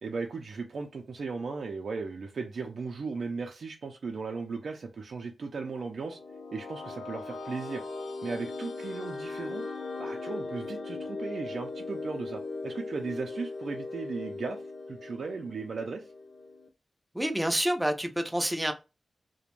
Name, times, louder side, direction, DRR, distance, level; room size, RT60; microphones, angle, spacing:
voice 1, 0.0-6.2 6.5-7.8 8.2-9.6 10.0-14.6 14.9-16.1, right 4 dB, 70° right, 0.4 m, -36 dB
sound 1, 5.8-16.7, left 3 dB, 65° left, 0.3 m, -39 dB
voice 2, 17.1-18.7, equal, 10° right, 0.4 m, -28 dB
2.4 x 2.1 x 3.0 m
wide cardioid pair, 120°, 0 cm